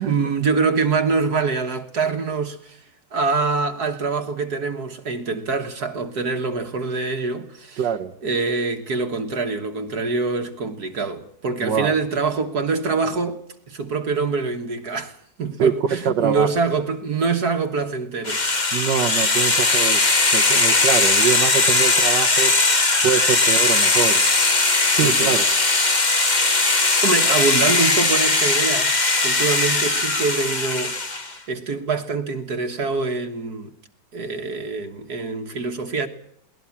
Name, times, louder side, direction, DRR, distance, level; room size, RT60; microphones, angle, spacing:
voice 1, 0.0-7.8 8.2-13.4 13.7-18.7 25.0-25.4 27.0-28.9 29.2-33.8 34.1-36.1, right 4 dB, 65° right, 1.9 m, -25 dB
voice 2, 7.8-8.1 11.6-11.9 15.6-16.5 18.7-20.0 20.3-22.5 23.0-24.2 24.9-25.5, right 7 dB, 90° right, 1.8 m, -23 dB
sound 1, 18.3-31.3, left 3 dB, 25° left, 1.6 m, -19 dB
22.0 x 18.5 x 7.2 m
omnidirectional pair, 1.9 m